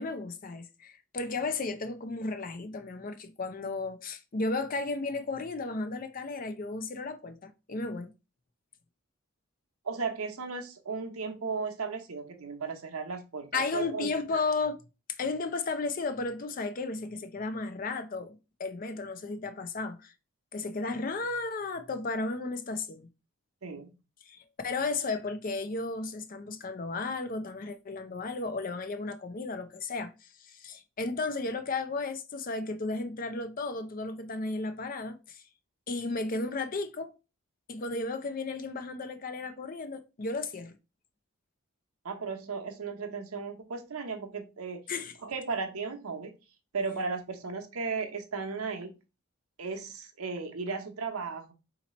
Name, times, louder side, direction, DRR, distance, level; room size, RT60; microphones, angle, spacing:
voice 1, 0.0-8.1 13.5-14.8 15.1-20.1 20.5-23.1 24.3-24.4 24.6-35.4 35.9-37.1 37.7-40.7 44.9-45.1, left 3 dB, 40° left, 0.5 m, -34 dB
voice 2, 9.8-14.1 23.6-23.9 42.0-44.8 45.2-46.3 46.7-49.0 49.6-51.5, right 4 dB, 85° right, 0.8 m, -35 dB
4.0 x 2.9 x 4.2 m
head